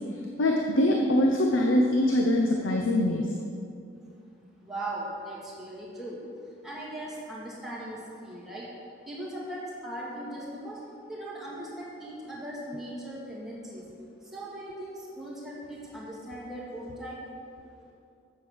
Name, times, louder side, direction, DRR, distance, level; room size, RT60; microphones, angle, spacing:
voice 1, 0.4-3.3, left 1 dB, 85° left, 1 dB, 0.8 m, -23 dB
voice 2, 4.6-8.7 9.1-13.9 14.2-17.2, right 1 dB, ahead, -7 dB, 2.0 m, -39 dB
8.3 x 7.5 x 6.3 m, 2.5 s
head